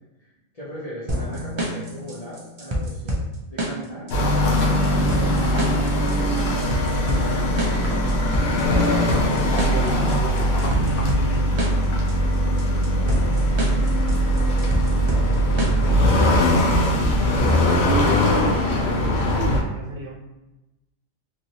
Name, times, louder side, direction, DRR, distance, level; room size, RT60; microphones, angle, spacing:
voice 1, 0.2-3.2 3.5-4.1 4.3-6.4 14.4-15.5, equal, 40° left, -8 dB, 0.7 m, -39 dB
sound 1, 1.1-17.1, equal, 45° right, 0.4 m, -28 dB
sound 2, 4.1-19.6, equal, 70° left, 0.9 m, -20 dB
voice 2, 9.5-11.0 16.9-20.1, right 3 dB, 70° right, -3 dB, 1.1 m, -34 dB
3.0 x 2.6 x 2.7 m, 1.0 s
omnidirectional pair, 1.2 m